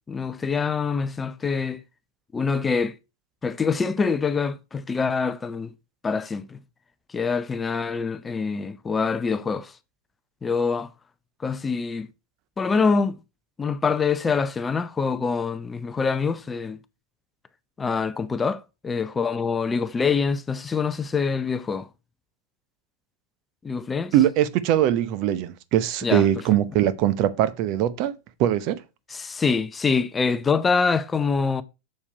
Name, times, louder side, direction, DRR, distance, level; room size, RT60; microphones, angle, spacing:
voice 1, 0.1-1.8 2.3-3.0 3.4-5.7 6.0-6.6 7.1-9.7 10.4-10.9 11.4-12.1 12.6-13.2 13.6-16.8 17.8-21.9 23.6-24.1 26.0-26.3 29.1-31.6, left 5 dB, 15° left, 0.6 m, -25 dB
voice 2, 24.1-28.1 28.4-28.8, right 11 dB, 40° right, 0.7 m, -21 dB
7.2 x 6.7 x 4.6 m
figure-of-eight pair, 90°, 0 cm